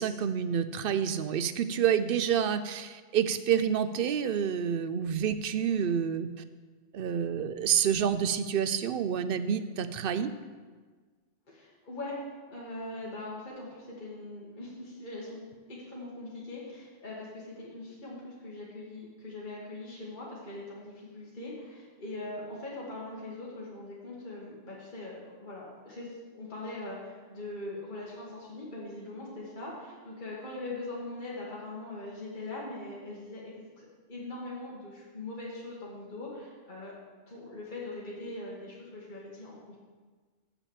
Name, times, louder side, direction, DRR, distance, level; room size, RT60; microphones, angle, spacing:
voice 1, 0.0-6.3 6.9-10.3, right 8 dB, 65° right, 11 dB, 0.7 m, -28 dB
voice 2, 11.5-12.1 12.5-15.4 15.7-36.9 37.3-39.8, left 2 dB, 45° left, -5 dB, 1.8 m, -41 dB
7.1 x 6.9 x 7.1 m, 1.4 s
omnidirectional pair, 1.1 m